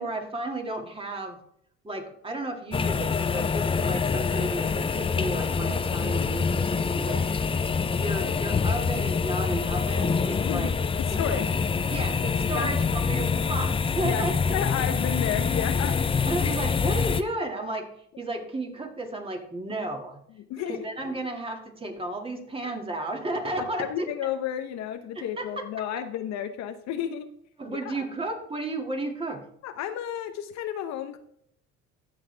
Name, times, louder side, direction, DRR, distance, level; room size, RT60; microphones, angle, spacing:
voice 1, 0.0-1.4 1.8-7.4 7.7-10.7 11.3-11.4 11.9-14.3 16.3-17.9 18.2-20.2 20.7-24.1 25.2-25.6 27.6-29.4, right 2 dB, 20° right, 3 dB, 2.1 m, -33 dB
sound 1, 2.7-17.2, left 5 dB, 20° left, 0.5 m, -26 dB
voice 2, 10.4-10.7 11.0-11.5 12.5-12.7 14.0-14.2 14.5-16.2 16.8-16.9 20.5-20.8 22.6-22.7 23.6-27.3 27.7-28.1 29.6-31.2, left 9 dB, 65° left, 8 dB, 0.9 m, -32 dB
15.5 x 6.3 x 3.4 m, 0.69 s
supercardioid pair, 100°, 30 cm